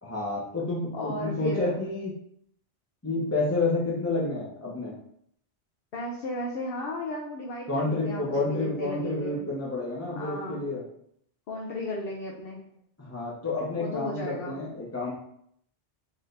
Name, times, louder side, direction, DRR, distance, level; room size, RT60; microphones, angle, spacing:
voice 1, 0.0-2.1 3.0-4.9 7.7-10.8 13.0-15.1, left 2 dB, 15° left, -6 dB, 0.6 m, -29 dB
voice 2, 0.9-1.8 5.9-9.5 10.1-10.6 11.5-12.6 13.8-14.6, left 1 dB, 60° left, -1 dB, 0.7 m, -34 dB
4.0 x 2.7 x 3.2 m, 0.69 s
omnidirectional pair, 1.2 m